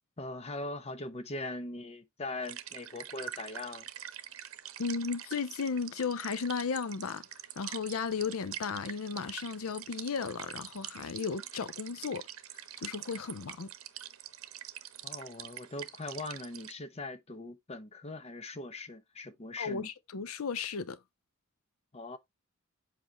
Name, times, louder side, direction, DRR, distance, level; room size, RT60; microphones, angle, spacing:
voice 1, 0.2-3.9 15.0-19.9 21.9-22.2, left 2 dB, 30° left, 0.8 m, -41 dB
sound 1, 2.4-16.7, right 11 dB, 70° right, 0.8 m, -45 dB
voice 2, 4.8-7.3 7.6-12.3 12.8-13.7 19.6-21.0, left 5 dB, 75° left, 0.5 m, -35 dB
7.8 x 4.9 x 2.9 m
head